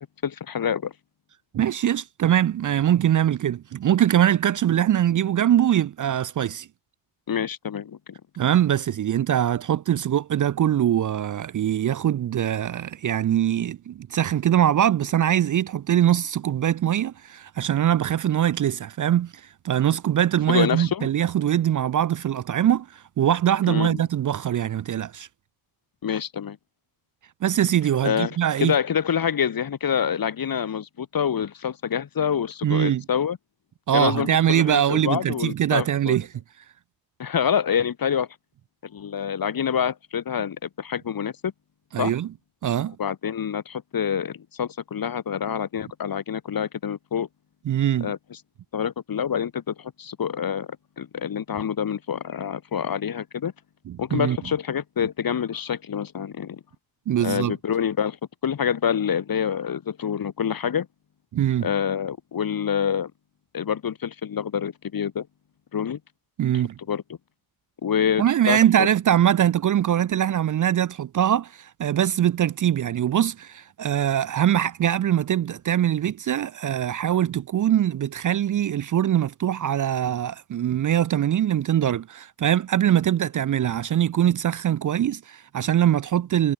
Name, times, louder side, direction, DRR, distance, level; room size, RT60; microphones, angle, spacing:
voice 1, 0.2-0.9 7.3-8.0 20.5-21.1 23.7-24.0 26.0-26.6 28.0-33.4 33.9-36.2 37.2-38.3 38.8-41.5 42.0-42.1 43.0-47.3 48.0-48.2 48.7-50.7 51.0-53.5 54.0-56.6 57.2-58.2 58.4-60.9 61.6-63.1 63.5-65.3 65.7-66.0 66.9-67.0 67.8-68.9, left 8 dB, 50° left, 2.8 m, -26 dB
voice 2, 1.5-6.7 8.4-25.3 27.4-28.8 32.6-33.0 33.9-36.3 41.9-42.3 42.6-43.0 47.6-48.1 53.9-54.4 57.1-57.6 61.3-61.7 66.4-66.8 68.2-86.5, right 10 dB, 45° right, 0.7 m, -22 dB
cardioid pair, 75°, 46 cm